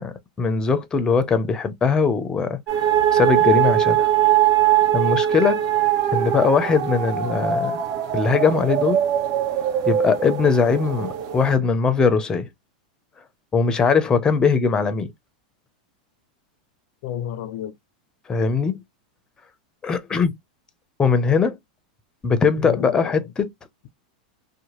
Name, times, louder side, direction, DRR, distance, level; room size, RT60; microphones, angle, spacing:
voice 1, 0.0-2.6 3.1-4.1 4.9-5.6 6.1-7.7 8.1-9.0 9.9-12.5 13.5-15.1 18.3-18.8 19.8-20.3 21.0-21.6 22.2-23.5, left 5 dB, 15° left, 0.6 m, -20 dB
sound 1, 2.7-11.5, right 10 dB, 60° right, 1.2 m, -21 dB
voice 2, 17.0-17.8 22.6-23.3, left 10 dB, 60° left, 0.4 m, -31 dB
2.7 x 2.1 x 3.0 m
supercardioid pair, 130°, 4 cm